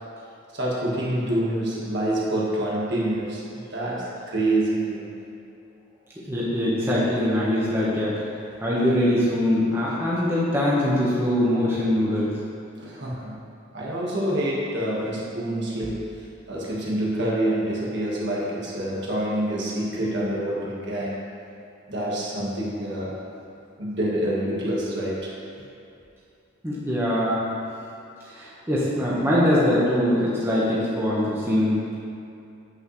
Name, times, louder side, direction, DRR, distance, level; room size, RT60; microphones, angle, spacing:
voice 1, 0.5-5.2 12.8-13.4 13.7-16.1 16.5-21.2 21.9-23.2 23.8-25.3, right 1 dB, 55° right, -5 dB, 1.7 m, -27 dB
voice 2, 6.3-8.1 8.6-12.4 26.6-27.4 28.2-32.0, left 1 dB, 10° right, -8 dB, 1.3 m, -22 dB
9.1 x 8.4 x 3.2 m, 2.6 s
head